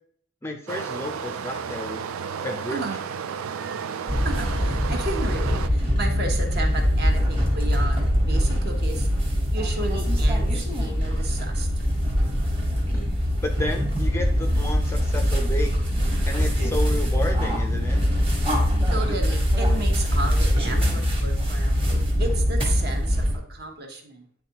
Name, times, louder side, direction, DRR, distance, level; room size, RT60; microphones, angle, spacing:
voice 1, 0.4-2.0 2.4-2.8 12.9-13.0 13.4-15.7 16.3-18.0, left 1 dB, 10° left, 4 dB, 0.5 m, -31 dB
Stream, 0.7-5.7, right 6 dB, 75° right, 0.4 m, -32 dB
sound 1, 4.1-23.4, equal, 25° right, 1.3 m, -23 dB
voice 2, 4.2-9.1 9.5-11.7 18.9-21.8 22.2-24.3, right 2 dB, 45° right, 2 dB, 1.0 m, -33 dB
9.6 x 3.5 x 2.9 m, 0.64 s
head